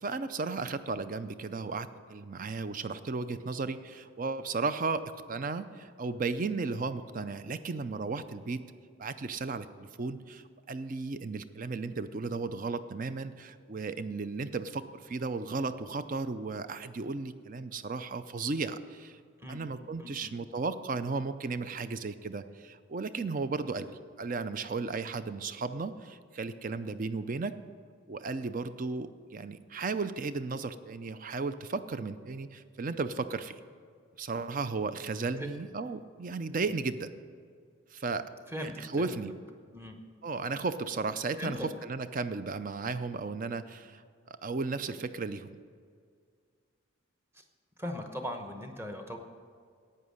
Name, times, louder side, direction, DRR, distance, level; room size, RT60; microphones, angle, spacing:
voice 1, 0.0-8.6 9.0-19.2 19.5-27.5 28.1-33.6 34.2-37.1 37.9-38.3 38.6-39.3 40.2-44.0 44.3-45.5, right 4 dB, 40° right, 12 dB, 0.5 m, -35 dB
voice 2, 19.4-19.7 20.0-20.3 35.4-35.5 38.5-39.1 39.7-40.0 41.4-41.7 47.3-47.4 47.8-49.2, equal, 10° right, 5 dB, 0.9 m, -39 dB
11.0 x 8.8 x 6.4 m, 2.1 s
head